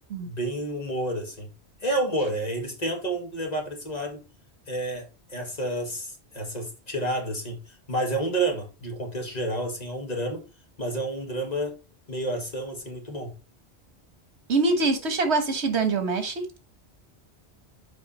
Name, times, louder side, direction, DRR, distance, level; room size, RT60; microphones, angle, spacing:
voice 1, 0.3-1.5 1.8-4.2 4.7-10.4 10.8-11.8 12.1-13.3, right 1 dB, 35° left, 1.9 m, -30 dB
voice 2, 14.5-16.4, right 3 dB, 80° right, 1.6 m, -24 dB
7.2 x 4.8 x 4.2 m
omnidirectional pair, 1.1 m